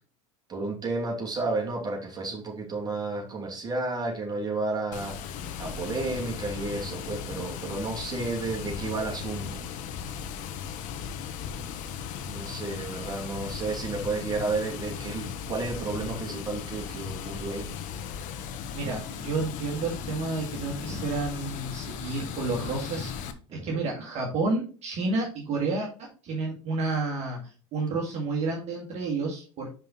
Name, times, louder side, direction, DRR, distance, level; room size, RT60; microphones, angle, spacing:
voice 1, 0.5-9.6 12.3-17.7 23.5-23.8, right 3 dB, 25° right, -1 dB, 2.6 m, -32 dB
Water, 4.9-23.3, left 7 dB, 55° left, 1.0 m, -37 dB
voice 2, 18.7-27.4 27.7-29.7, right 3 dB, 40° right, -2 dB, 2.0 m, -30 dB
5.6 x 5.2 x 4.2 m, 0.38 s
supercardioid pair, 105°, 16 cm